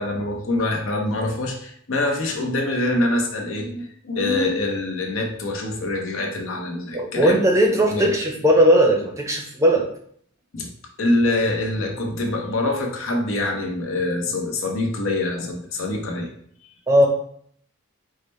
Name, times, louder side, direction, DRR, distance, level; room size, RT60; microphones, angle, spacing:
voice 1, 0.0-7.4 7.9-8.1 10.5-10.7 11.0-16.3, left 2 dB, 70° left, 2 dB, 0.8 m, -25 dB
voice 2, 6.9-9.9 16.9-17.1, equal, 15° right, 1 dB, 0.6 m, -17 dB
4.8 x 2.2 x 4.2 m, 0.64 s
head